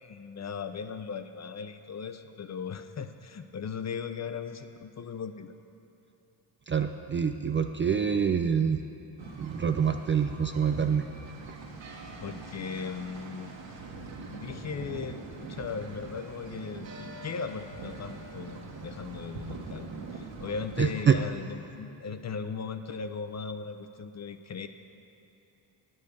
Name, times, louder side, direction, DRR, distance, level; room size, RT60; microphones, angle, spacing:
voice 1, 0.0-5.6 12.2-13.5 14.1-24.7, left 6 dB, 35° left, 9 dB, 0.5 m, -38 dB
voice 2, 6.7-8.8 9.4-11.1 20.8-21.2, right 7 dB, 25° right, 6 dB, 0.3 m, -26 dB
sound 1, 9.2-21.1, right 3 dB, 65° right, 1.4 m, -43 dB
10.0 x 5.4 x 6.7 m, 2.9 s
supercardioid pair, 60°, 48 cm